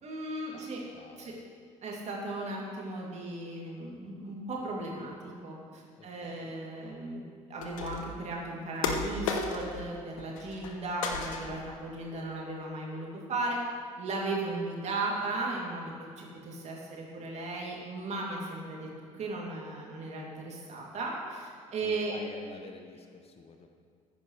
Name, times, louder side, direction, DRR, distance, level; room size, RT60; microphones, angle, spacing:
voice 1, 0.0-0.8 1.2-1.3 1.8-5.1 5.4-7.2 7.5-13.6 14.0-18.9 19.2-22.1, right 2 dB, 40° right, -3 dB, 2.8 m, -36 dB
voice 2, 0.9-1.4 5.9-6.6 21.8-23.7, left 4 dB, 35° left, 5 dB, 1.0 m, -50 dB
sound 1, 7.6-8.2 8.8-9.9 10.2-10.7 11.0-11.7, left 4 dB, 75° left, 0.9 m, -34 dB
14.5 x 10.0 x 3.3 m, 2.2 s
figure-of-eight pair, 55°, 17 cm